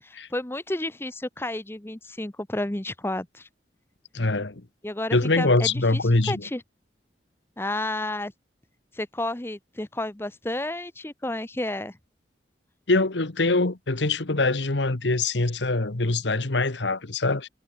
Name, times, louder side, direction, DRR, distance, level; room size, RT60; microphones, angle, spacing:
voice 1, 0.0-3.5 4.8-6.0 6.3-6.6 7.6-8.3 8.9-12.0, left 1 dB, 15° left, 0.8 m, -31 dB
voice 2, 4.1-4.6 5.1-6.4 12.9-17.5, left 2 dB, 90° left, 1.5 m, -23 dB
head